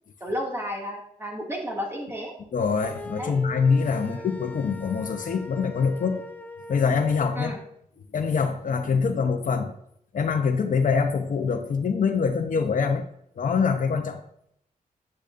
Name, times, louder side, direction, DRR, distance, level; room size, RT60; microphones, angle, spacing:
voice 1, 0.2-2.3 3.2-3.4 4.1-4.3 7.4-7.6, equal, 15° right, -1 dB, 2.4 m, -32 dB
voice 2, 2.5-6.2 6.7-7.6 8.1-9.7 10.1-13.1 13.4-14.2, left 5 dB, 65° left, 6 dB, 0.9 m, -24 dB
sound 1, 2.8-7.7, left 1 dB, 10° left, 0.6 m, -41 dB
10.5 x 9.0 x 2.6 m, 0.72 s
wide cardioid pair, 115°, 15 cm